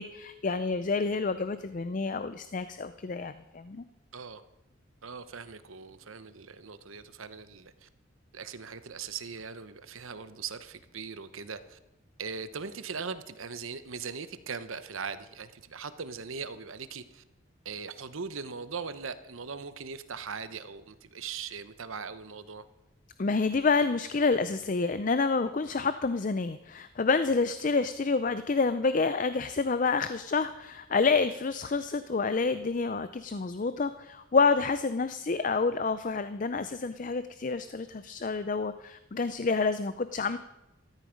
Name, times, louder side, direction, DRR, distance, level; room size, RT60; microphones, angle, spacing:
voice 1, 0.0-3.8 23.2-40.4, left 4 dB, 40° left, 12 dB, 0.4 m, -28 dB
voice 2, 5.0-7.9 8.3-11.8 12.2-17.2 17.6-22.6, right 5 dB, 75° right, 12 dB, 0.9 m, -40 dB
14.0 x 13.5 x 5.2 m, 0.94 s
head